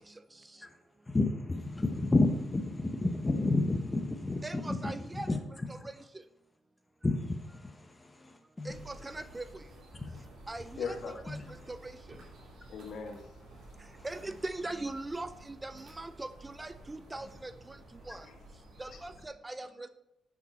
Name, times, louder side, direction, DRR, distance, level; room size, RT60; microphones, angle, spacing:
voice 1, 1.1-4.9 5.2-5.4 5.8-5.9 7.0-8.7 9.9-10.3 11.3-11.4 14.0-14.1, left 2 dB, 15° left, 0.9 m, -31 dB
voice 2, 4.4-5.3 5.7-5.8 8.7-9.4 10.5-11.4 11.7-11.8 14.0-17.5 18.1-18.2 18.8-19.9, right 2 dB, 15° right, 0.4 m, -40 dB
sound 1, 8.7-19.2, right 1 dB, 70° right, 3.7 m, -53 dB
voice 3, 10.8-11.2 12.7-13.9 17.2-17.3 18.2-18.4 18.9-19.0 19.6-19.7, left 5 dB, 65° left, 1.8 m, -41 dB
10.5 x 7.4 x 4.4 m
cardioid pair, 135°, 0 cm